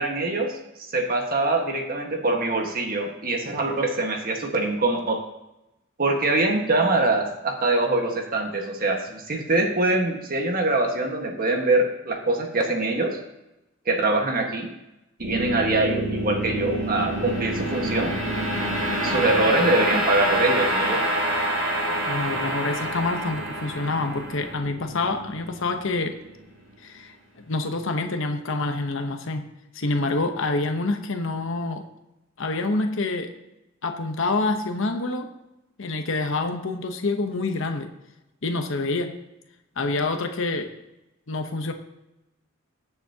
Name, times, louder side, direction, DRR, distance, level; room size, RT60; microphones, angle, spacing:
voice 1, 0.0-5.2 6.0-13.2 13.8-14.7 15.2-18.1 19.0-21.0, right 2 dB, 45° right, 2 dB, 1.5 m, -24 dB
sound 1, 15.2-26.4, right 1 dB, 70° right, 3.5 m, -27 dB
voice 2, 22.1-26.2 26.8-27.1 27.5-29.5 29.7-31.8 32.4-33.3 33.8-35.3 35.8-37.9 38.4-39.2 39.8-40.7 41.3-41.7, left 3 dB, 65° left, 6 dB, 0.9 m, -27 dB
20.5 x 7.0 x 2.8 m, 0.94 s
head